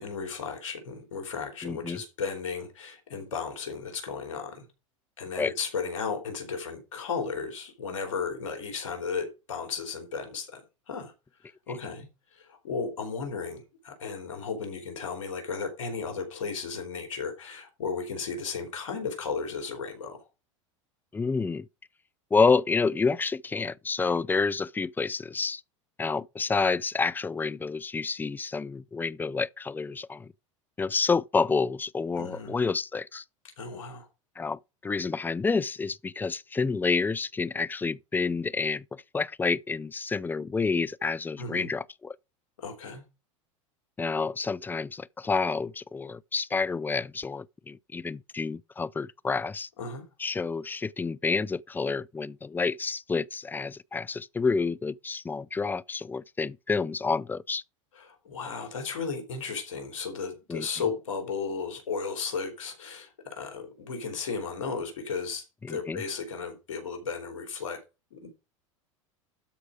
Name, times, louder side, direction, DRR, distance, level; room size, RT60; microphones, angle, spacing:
voice 1, 0.0-4.7 5.2-10.6 10.9-11.1 11.4-20.2 32.2-32.6 33.6-34.1 41.4-41.7 42.6-43.0 49.8-50.1 57.9-67.8 68.1-68.3, left 5 dB, 85° left, 3.2 m, -35 dB
voice 2, 1.6-2.0 5.4-5.5 11.7-11.8 21.1-21.7 22.3-25.6 26.0-30.3 30.8-33.2 34.4-42.2 44.0-49.7 50.2-57.6 60.5-60.7 65.6-66.0, left 4 dB, 10° left, 0.4 m, -29 dB
12.5 x 4.8 x 4.9 m
hypercardioid pair, 95°, 16 cm